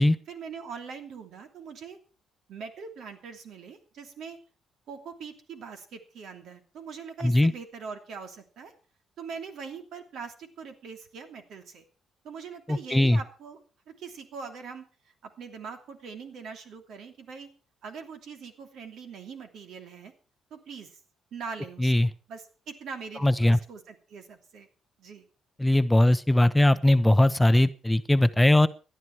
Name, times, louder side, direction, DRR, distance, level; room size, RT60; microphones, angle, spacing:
voice 1, 0.3-2.0 2.5-4.4 4.9-8.7 9.2-11.8 12.2-13.6 13.9-17.5 17.8-20.1 20.5-21.0 21.3-24.7 25.0-25.3, right 5 dB, 70° right, 6 dB, 2.9 m, -42 dB
voice 2, 7.2-7.5 12.7-13.2 21.8-22.1 23.2-23.6 25.6-28.7, left 1 dB, 10° left, 12 dB, 0.7 m, -20 dB
18.0 x 11.5 x 4.6 m, 0.36 s
cardioid pair, 90°, 0 cm